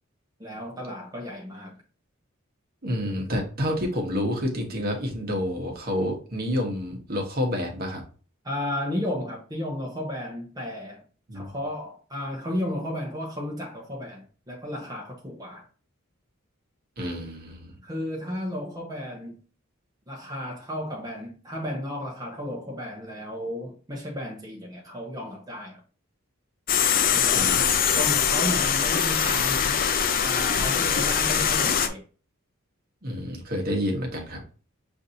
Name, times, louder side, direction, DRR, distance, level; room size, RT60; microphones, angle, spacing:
voice 1, 0.4-1.8 8.4-11.0 11.3-15.7 17.8-19.4 20.1-25.8 27.1-29.7 30.2-32.0, left 1 dB, 20° right, 0.8 m, -33 dB
voice 2, 2.8-8.0 11.3-11.5 17.0-17.8 27.3-27.9 33.0-34.4, equal, 45° right, 1.1 m, -29 dB
sound 1, 26.7-31.9, left 7 dB, 45° left, 0.5 m, -23 dB
6.9 x 2.6 x 2.7 m
head